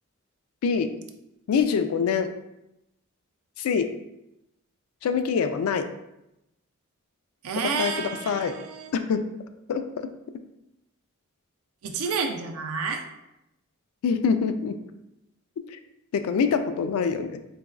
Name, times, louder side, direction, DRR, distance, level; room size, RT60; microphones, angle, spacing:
voice 1, 0.6-0.9 1.5-2.3 3.6-3.9 5.0-5.9 7.8-8.5 8.9-9.3 9.7-9.8 14.0-14.8 15.7-15.8 16.1-17.4, left 6 dB, 85° left, 11 dB, 0.3 m, -25 dB
voice 2, 7.4-8.9 11.8-13.0, right 5 dB, 80° right, 5 dB, 0.4 m, -30 dB
4.1 x 2.2 x 2.3 m, 0.87 s
head